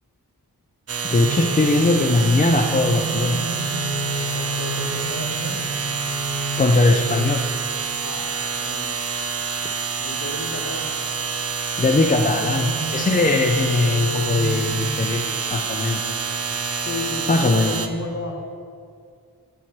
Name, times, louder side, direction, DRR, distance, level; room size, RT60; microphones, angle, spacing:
sound 1, 0.9-17.9, right 5 dB, 40° right, 0.5 m, -27 dB
voice 1, 1.0-3.5 6.6-7.4 11.8-15.2 15.5-16.0 16.7-16.9 17.3-17.8, left 2 dB, 20° left, 2 dB, 0.4 m, -20 dB
sound 2, 1.2-7.8 12.1-14.9, right 1 dB, 65° right, 1.0 m, -31 dB
voice 2, 4.3-5.7 8.0-9.0 10.0-11.0 16.8-18.4, left 2 dB, 40° left, 3 dB, 1.0 m, -33 dB
8.3 x 3.2 x 5.8 m, 2.3 s
cardioid pair, 40°, 39 cm